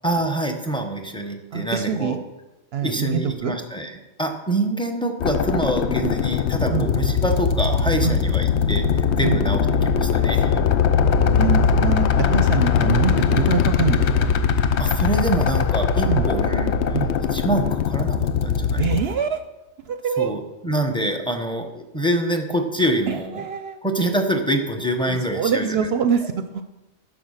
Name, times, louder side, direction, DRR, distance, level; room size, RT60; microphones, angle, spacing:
voice 1, 0.0-2.1 2.8-3.9 4.2-9.6 9.9-10.6 14.8-16.7 17.3-18.8 20.2-23.3 23.8-25.7, right 1 dB, 5° left, 4 dB, 0.9 m, -25 dB
voice 2, 1.5-2.2 2.7-3.6 5.9-6.1 6.7-6.9 8.0-8.2 9.2-9.5 11.1-14.4 16.0-16.3 16.9-17.2 18.8-19.4 19.8-20.3 23.1-23.8 25.1-26.6, right 7 dB, 65° right, 9 dB, 0.7 m, -25 dB
sound 1, 5.2-19.0, left 7 dB, 70° left, 0.9 m, -20 dB
9.7 x 6.4 x 6.5 m, 1.0 s
omnidirectional pair, 1.2 m